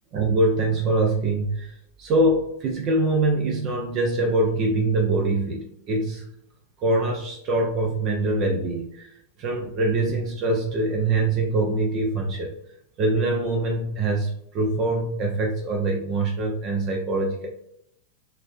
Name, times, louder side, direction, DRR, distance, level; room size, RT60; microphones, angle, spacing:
voice 1, 0.1-1.7 2.0-6.2 6.8-9.1 9.4-12.5 13.0-17.5, right 2 dB, 35° right, 1 dB, 0.6 m, -24 dB
4.1 x 2.7 x 2.5 m, 0.72 s
figure-of-eight pair, 90°, 0 cm